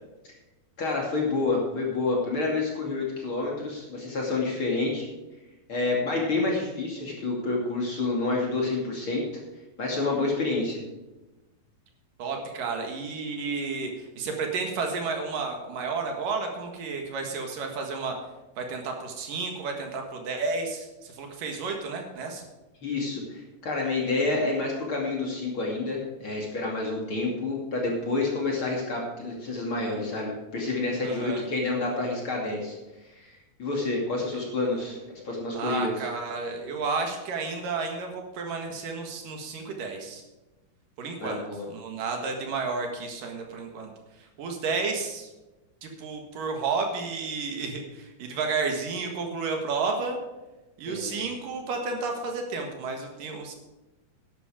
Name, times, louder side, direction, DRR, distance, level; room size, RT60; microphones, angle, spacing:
voice 1, 0.8-5.1 5.7-9.2 9.8-10.8 22.8-32.8 33.0-35.0 35.2-35.9 41.2-41.7 50.9-51.2, left 3 dB, 40° left, -1 dB, 2.9 m, -28 dB
voice 2, 12.2-18.2 18.6-22.4 31.0-31.4 35.5-40.2 41.0-41.4 41.7-45.3 45.8-50.2 50.8-53.6, right 4 dB, 65° right, 3 dB, 3.2 m, -32 dB
11.5 x 11.5 x 5.0 m, 1.1 s
omnidirectional pair, 4.2 m